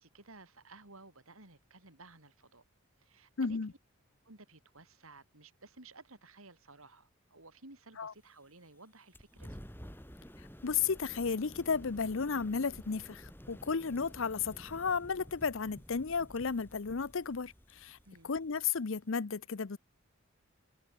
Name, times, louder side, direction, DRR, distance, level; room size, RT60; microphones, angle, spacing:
voice 1, 0.0-2.6 3.0-3.6 4.2-9.6 18.0-18.3, right 3 dB, 75° right, 5.1 m, -56 dB
voice 2, 3.4-3.7 8.0-8.1 10.6-18.0 18.2-19.8, left 5 dB, 65° left, 0.7 m, -33 dB
sound 1, 9.1-19.1, equal, 10° left, 7.4 m, -52 dB
head